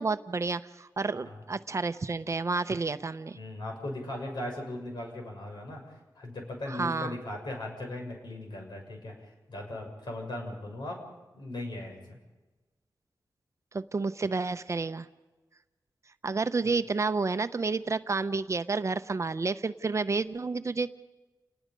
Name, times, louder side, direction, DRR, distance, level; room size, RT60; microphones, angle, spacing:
voice 1, 0.0-3.4 6.7-7.2 13.7-15.1 16.2-20.9, right 4 dB, 40° right, 11 dB, 0.7 m, -30 dB
voice 2, 3.4-9.1 9.5-11.0 11.3-12.2, left 1 dB, 75° left, 1 dB, 6.4 m, -38 dB
29.5 x 19.5 x 5.3 m, 1.2 s
wide cardioid pair, 105°, 8 cm